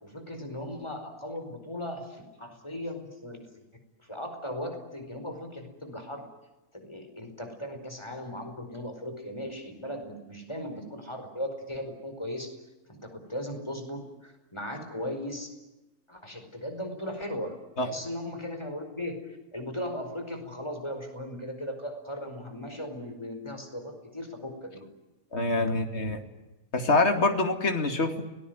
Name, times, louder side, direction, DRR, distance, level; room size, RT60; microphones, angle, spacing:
voice 1, 0.0-3.5 4.0-6.2 6.7-12.5 12.9-15.5 16.1-24.9, left 1 dB, 20° left, 5 dB, 4.9 m, -37 dB
voice 2, 25.3-26.2 26.7-28.3, left 2 dB, 45° left, 5 dB, 2.7 m, -25 dB
29.5 x 20.0 x 9.3 m, 1.0 s
omnidirectional pair, 1.5 m